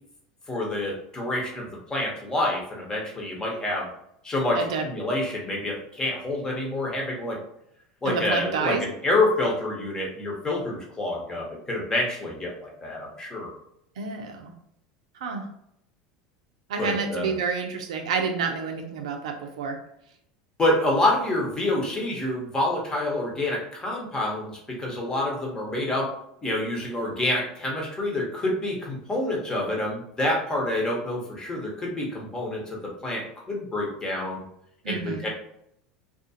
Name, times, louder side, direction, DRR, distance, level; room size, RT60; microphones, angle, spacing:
voice 1, 0.5-3.9 4.2-7.4 8.0-13.5 16.8-17.3 20.6-26.1 26.4-34.4 34.9-35.3, left 1 dB, 20° left, -2 dB, 1.0 m, -27 dB
voice 2, 4.6-4.9 8.0-8.8 14.0-14.5 15.2-15.4 16.7-19.8 34.8-35.2, right 5 dB, 75° right, 4 dB, 0.5 m, -29 dB
2.4 x 2.4 x 2.7 m, 0.74 s
hypercardioid pair, 85°, 3 cm